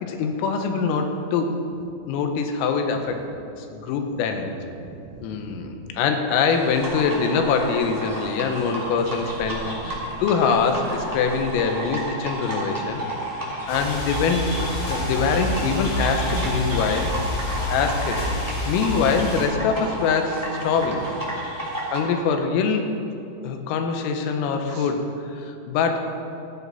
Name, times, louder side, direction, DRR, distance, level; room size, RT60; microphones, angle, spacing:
voice 1, 0.0-1.6 2.1-3.2 3.6-4.5 5.2-9.9 10.2-13.0 13.7-14.5 14.9-17.1 17.7-18.2 18.7-21.0 21.9-22.9 23.4-26.0, left 5 dB, 80° left, 5 dB, 3.7 m, -24 dB
voice 2, 4.7-5.9 9.5-10.2 12.9-13.6 20.8-21.5 24.7-24.9, right 5 dB, 80° right, 3 dB, 3.5 m, -43 dB
sound 1, 6.5-22.0, right 1 dB, 10° right, 1.3 m, -32 dB
sound 2, 13.7-19.5, left 1 dB, 45° left, 4.1 m, -28 dB
14.5 x 14.5 x 4.1 m, 2.7 s
omnidirectional pair, 6.0 m